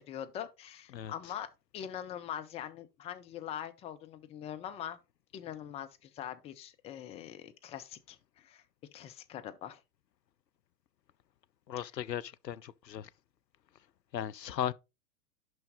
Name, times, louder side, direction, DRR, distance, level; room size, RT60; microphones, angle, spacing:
voice 1, 0.1-5.0 5.3-8.6 8.9-9.8, left 10 dB, 15° left, 0.4 m, -43 dB
voice 2, 11.7-13.1 14.1-14.7, left 10 dB, 85° left, 0.6 m, -36 dB
6.1 x 5.7 x 4.0 m
figure-of-eight pair, 100°, 49 cm